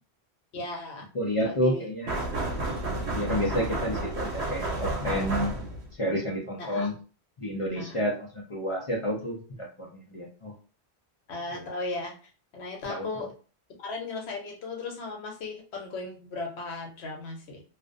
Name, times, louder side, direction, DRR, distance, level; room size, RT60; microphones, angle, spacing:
voice 1, 0.5-1.1 1.4-2.3 6.6-6.9 7.7-8.0 11.3-12.2 12.5-13.3 13.8-17.6, left 3 dB, 80° left, 1 dB, 1.0 m, -36 dB
voice 2, 1.1-2.1 3.1-5.5 6.0-6.9 7.4-10.5 12.9-13.1, equal, 45° left, -2 dB, 0.4 m, -30 dB
sound 1, 2.1-5.9, right 2 dB, 85° right, 1.0 m, -31 dB
2.4 x 2.1 x 2.5 m, 0.37 s
omnidirectional pair, 1.1 m